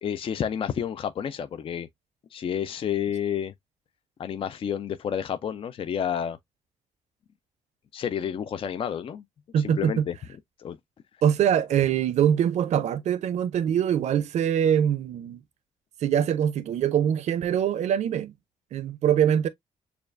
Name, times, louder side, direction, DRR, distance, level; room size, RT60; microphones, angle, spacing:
voice 1, 0.0-1.9 2.3-3.5 4.2-6.4 7.9-9.2 9.6-10.1 10.6-10.8, left 8 dB, 50° left, 0.5 m, -30 dB
voice 2, 9.5-10.0 11.2-15.4 16.0-18.3 18.7-19.5, right 9 dB, 70° right, 0.5 m, -23 dB
6.7 x 2.4 x 2.5 m
cardioid pair, 110°, 12 cm